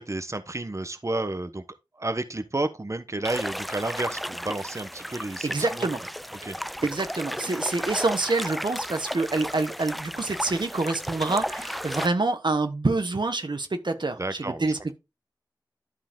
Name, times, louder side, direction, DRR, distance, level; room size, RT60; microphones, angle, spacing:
voice 1, 0.0-1.6 2.0-5.9 6.4-6.6 14.2-14.7, right 2 dB, 40° right, 1.0 m, -31 dB
sound 1, 3.2-12.1, equal, ahead, 0.3 m, -34 dB
voice 2, 5.4-6.0 6.8-15.0, right 3 dB, 75° right, 1.2 m, -27 dB
11.5 x 4.9 x 3.7 m
wide cardioid pair, 50°, 8 cm